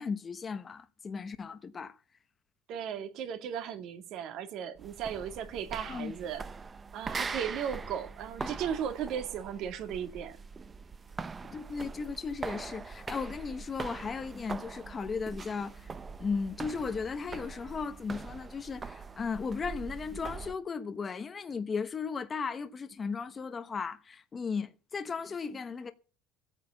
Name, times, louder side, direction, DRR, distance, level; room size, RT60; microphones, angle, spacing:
voice 1, 0.0-2.0 5.9-6.1 8.4-8.5 11.5-15.9 16.2-25.9, left 5 dB, 20° left, 1.0 m, -36 dB
voice 2, 2.7-6.4 6.9-10.4, right 8 dB, 50° right, 2.3 m, -36 dB
sound 1, 4.8-20.6, right 4 dB, 20° right, 0.7 m, -42 dB
15.5 x 8.9 x 7.0 m
cardioid pair, 145°, 0 cm